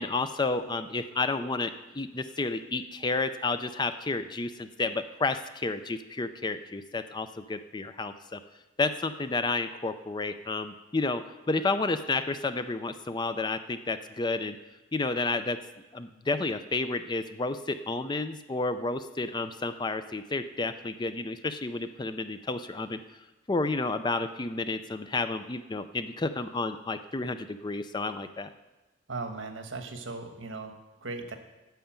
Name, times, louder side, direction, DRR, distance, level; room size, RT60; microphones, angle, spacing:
voice 1, 0.0-8.4 8.8-14.6 14.9-15.6 15.9-23.0 23.5-28.5, left 3 dB, 20° left, 10 dB, 0.4 m, -31 dB
voice 2, 29.1-31.4, right 3 dB, 80° right, 6 dB, 1.3 m, -38 dB
9.1 x 6.9 x 8.8 m, 1.1 s
head